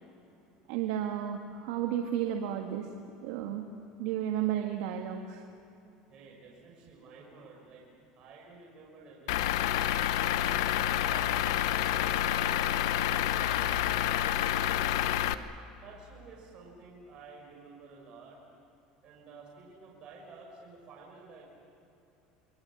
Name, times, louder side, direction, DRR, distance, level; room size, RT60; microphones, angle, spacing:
voice 1, 0.7-2.9 3.2-3.6 4.0-5.4, right 10 dB, 80° right, 3 dB, 1.7 m, -32 dB
voice 2, 6.1-7.9 8.2-9.6 10.4-11.3 11.9-14.3 15.3-15.5 15.8-18.4 19.0-21.4, right 4 dB, 45° right, -2 dB, 6.1 m, -52 dB
Truck / Idling, 9.3-15.3, left 12 dB, 90° left, 0.9 m, -28 dB
28.5 x 22.5 x 7.5 m, 2.9 s
supercardioid pair, 125°, 2 cm